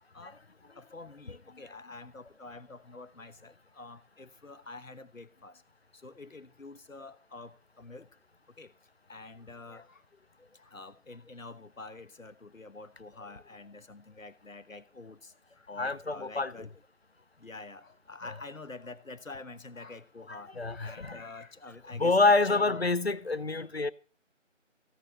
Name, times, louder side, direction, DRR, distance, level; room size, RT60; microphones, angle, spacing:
voice 1, 0.8-5.6 6.0-8.1 8.6-8.7 9.1-10.0 10.4-16.7 17.4-23.4, left 3 dB, 90° left, 1.1 m, -47 dB
voice 2, 15.8-16.5 20.3-21.2 21.9-23.9, left 3 dB, 55° left, 0.5 m, -27 dB
15.5 x 6.3 x 4.2 m
figure-of-eight pair, 165°, 38 cm